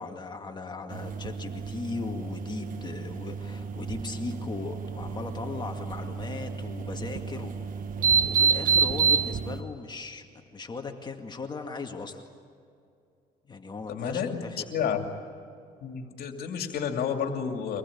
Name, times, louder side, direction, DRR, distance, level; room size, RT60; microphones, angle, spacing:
voice 1, 0.0-7.9 8.2-12.3 13.5-15.0, left 4 dB, 25° left, 4 dB, 2.2 m, -38 dB
sound 1, 0.9-9.6, right 6 dB, 55° right, 1.3 m, -29 dB
voice 2, 13.9-15.0 15.8-17.8, left 7 dB, 65° left, 4 dB, 2.6 m, -30 dB
25.5 x 20.5 x 8.6 m, 2.5 s
cardioid pair, 110°, 17 cm